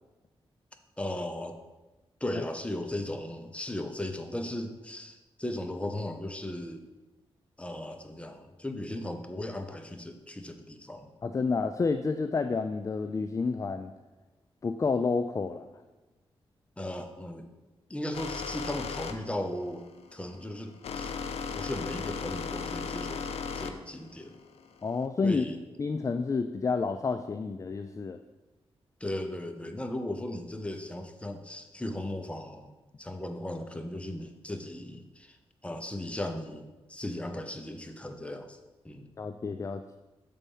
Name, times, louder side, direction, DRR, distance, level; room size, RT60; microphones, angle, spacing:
voice 1, 1.0-1.6 2.2-6.8 7.6-11.1 16.8-17.5 17.9-21.1 21.5-24.4 25.2-25.6 29.0-32.7 33.0-35.4 35.6-38.6 38.8-39.1, left 1 dB, 10° left, 6 dB, 0.8 m, -37 dB
voice 2, 11.2-13.9 14.6-15.7 24.8-25.4 25.8-28.2 39.2-40.0, left 4 dB, 30° left, 9 dB, 0.3 m, -29 dB
sound 1, 18.1-25.1, left 5 dB, 80° left, 0.5 m, -36 dB
6.9 x 4.1 x 5.4 m, 1.1 s
cardioid pair, 70°, 10 cm